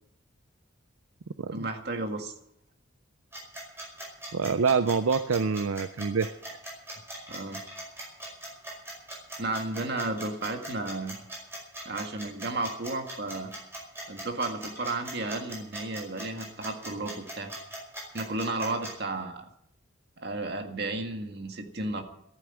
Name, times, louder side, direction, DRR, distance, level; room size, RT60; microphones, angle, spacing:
voice 1, 1.5-2.3 7.3-7.6 9.4-11.2 11.9-13.5 14.1-17.5 18.1-19.5 20.2-22.0, right 2 dB, 50° right, 4 dB, 2.0 m, -33 dB
sound 1, 3.3-18.9, right 1 dB, 10° right, 5.1 m, -40 dB
voice 2, 4.3-6.3, right 5 dB, 90° right, 12 dB, 0.6 m, -26 dB
14.5 x 9.5 x 9.0 m, 0.74 s
head